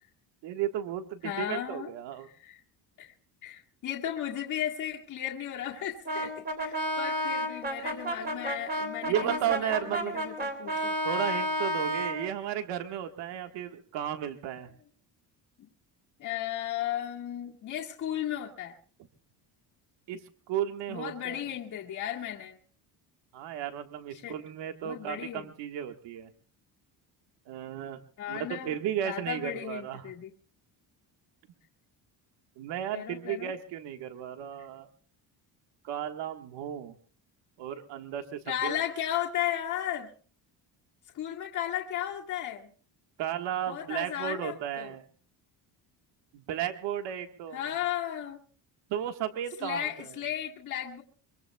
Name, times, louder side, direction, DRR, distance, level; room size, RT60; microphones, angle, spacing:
voice 1, 0.4-2.3 9.0-10.2 11.0-14.7 20.1-20.2 20.5-21.4 23.3-26.3 27.5-28.0 28.3-30.0 32.6-34.9 35.8-36.9 37.6-38.8 43.2-45.0 46.3-47.6 48.9-50.2, right 10 dB, 75° right, 6 dB, 1.6 m, -34 dB
voice 2, 1.2-1.9 2.4-2.6 3.0-3.1 3.4-10.9 16.2-18.7 20.9-22.6 24.1-24.3 24.8-25.5 28.2-28.8 29.0-30.3 32.9-33.5 38.5-40.1 41.1-42.7 43.7-44.9 47.5-48.4 49.6-51.0, left 11 dB, 45° left, -2 dB, 1.9 m, -35 dB
Brass instrument, 6.1-12.2, equal, 20° right, 3.0 m, -31 dB
24.0 x 23.0 x 2.3 m, 0.41 s
cardioid pair, 180°, 43 cm